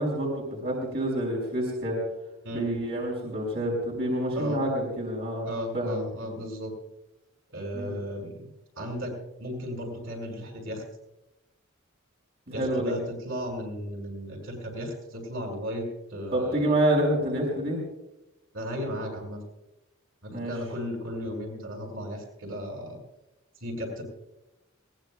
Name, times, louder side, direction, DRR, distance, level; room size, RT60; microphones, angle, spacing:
voice 1, 0.0-2.0 2.5-5.5 5.7-6.1 7.7-7.9 12.5-12.9 16.3-17.8 20.3-20.5, right 1 dB, 50° right, -3 dB, 5.5 m, -27 dB
voice 2, 5.4-6.7 7.5-8.5 8.8-10.8 12.5-16.8 18.5-19.4 20.2-23.0 23.6-24.0, equal, 70° right, 0 dB, 7.2 m, -35 dB
22.5 x 20.5 x 2.4 m, 0.94 s
head